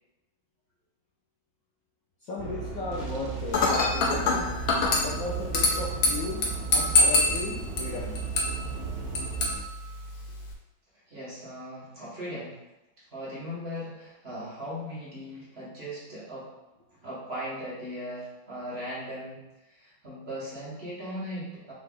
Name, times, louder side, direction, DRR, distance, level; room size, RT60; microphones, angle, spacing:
voice 1, 2.2-4.5 5.0-8.3, left 3 dB, 90° left, -4 dB, 0.7 m, -36 dB
sound 1, 2.4-9.6, right 6 dB, 80° right, 1.5 m, -35 dB
Dishes pots and pans / Glass, 3.5-10.5, left 3 dB, 65° left, 0.9 m, -27 dB
voice 2, 11.1-12.6 13.0-16.5 16.9-21.7, equal, 35° right, -9 dB, 1.3 m, -38 dB
3.9 x 2.7 x 3.7 m, 1.0 s
omnidirectional pair, 2.2 m